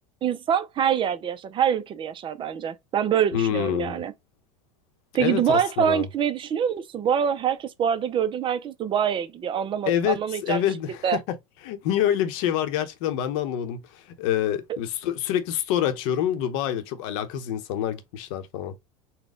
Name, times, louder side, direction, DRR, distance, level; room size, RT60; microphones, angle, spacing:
voice 1, 0.2-4.1 5.1-10.6 11.0-11.2, right 8 dB, 30° right, 0.6 m, -25 dB
voice 2, 3.3-4.0 5.2-6.1 9.9-11.4 11.6-18.8, left 10 dB, 65° left, 0.9 m, -27 dB
4.1 x 2.2 x 3.6 m
supercardioid pair, 120°, 18 cm